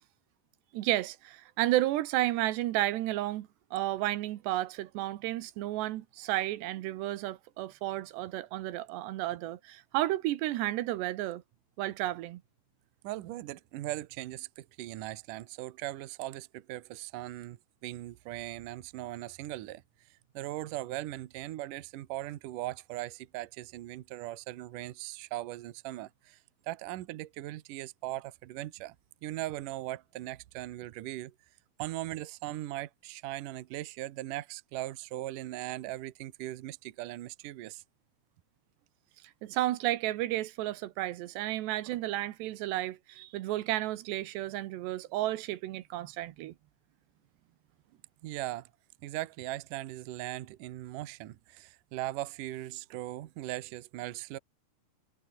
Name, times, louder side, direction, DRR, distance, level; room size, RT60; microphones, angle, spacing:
voice 1, 0.7-11.4 11.8-12.4 39.4-46.5, right 15 dB, 85° right, 3.3 m, -32 dB
voice 2, 13.0-19.8 20.3-26.4 26.7-29.0 29.2-31.3 31.8-37.8 48.2-48.7 49.0-54.4, right 16 dB, 65° right, 2.3 m, -39 dB
omnidirectional pair, 4.8 m